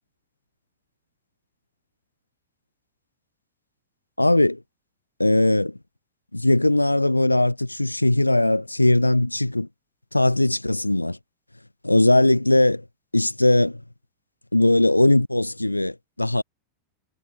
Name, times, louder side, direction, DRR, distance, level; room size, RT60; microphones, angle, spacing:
voice 1, 4.2-4.6 5.2-5.8 6.3-9.7 10.1-11.2 11.8-12.9 13.1-13.8 14.5-16.4, left 1 dB, 85° left, 0.7 m, -19 dB
figure-of-eight pair, 90°, 0 cm